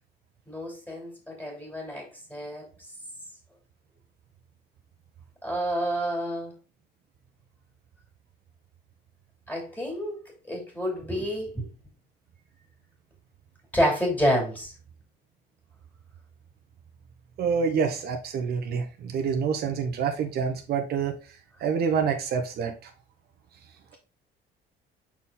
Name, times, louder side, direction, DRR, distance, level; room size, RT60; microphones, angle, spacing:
voice 1, 0.5-2.7 5.4-6.5 9.5-11.7 13.7-14.7, equal, 10° left, 2.8 m, -29 dB
voice 2, 17.4-21.2 21.6-22.9, right 6 dB, 55° right, 0.9 m, -27 dB
6.1 x 4.3 x 3.7 m
cardioid pair, 145°, 19 cm